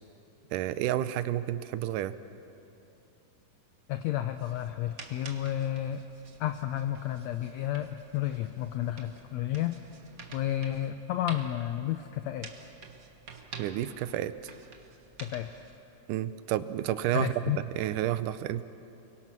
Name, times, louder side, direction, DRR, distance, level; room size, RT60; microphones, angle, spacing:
voice 1, 0.5-2.2 13.6-14.5 16.1-18.6, right 12 dB, 75° right, 12 dB, 2.2 m, -30 dB
voice 2, 3.9-6.0 6.4-9.8 10.3-12.5 15.2-15.5 17.1-17.6, left 12 dB, 75° left, 8 dB, 1.6 m, -31 dB
sound 1, 4.3-15.8, right 5 dB, 50° right, 1.0 m, -49 dB
30.0 x 22.5 x 6.2 m, 2.8 s
omnidirectional pair, 3.9 m